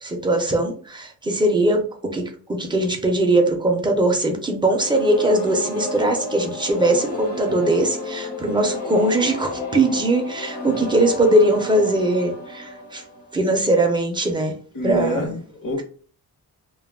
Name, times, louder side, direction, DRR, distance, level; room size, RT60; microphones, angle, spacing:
voice 1, 0.0-2.2 2.5-13.0 13.3-14.5 14.8-15.3, right 1 dB, 15° right, 0.4 m, -20 dB
sound 1, 4.7-13.6, left 3 dB, 85° left, 1.1 m, -32 dB
voice 2, 14.7-15.8, left 1 dB, 55° left, 0.8 m, -26 dB
2.2 x 2.1 x 3.4 m
wide cardioid pair, 180°, 40 cm